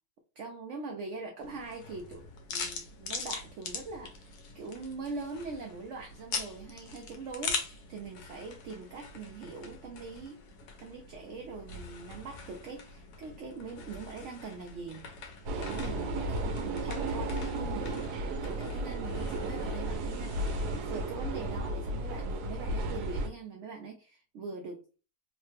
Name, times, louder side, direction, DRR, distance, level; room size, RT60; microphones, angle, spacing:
voice 1, 0.4-10.5 10.8-18.2 18.4-24.8, right 4 dB, 65° right, 3 dB, 0.7 m, -42 dB
sound 1, 1.4-20.8, left 5 dB, 85° left, 1.2 m, -43 dB
sound 2, 15.5-23.3, right 1 dB, 85° right, 1.2 m, -34 dB
3.1 x 2.1 x 3.2 m, 0.34 s
omnidirectional pair, 1.7 m